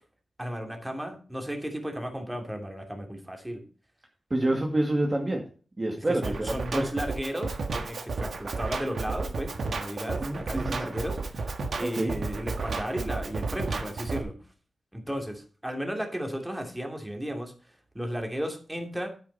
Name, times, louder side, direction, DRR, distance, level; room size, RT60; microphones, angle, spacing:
voice 1, 0.4-3.6 6.0-11.5 11.8-14.3 14.9-17.5 17.9-19.1, equal, 10° right, 3 dB, 2.7 m, -34 dB
voice 2, 4.3-5.4 5.8-6.8 10.2-10.4 10.7-10.8 11.8-12.1, right 1 dB, 30° right, 1 dB, 2.1 m, -27 dB
Drum kit, 6.2-14.2, right 3 dB, 70° right, 1.5 m, -33 dB
9.2 x 8.9 x 4.1 m, 0.39 s
wide cardioid pair, 90°, 0 cm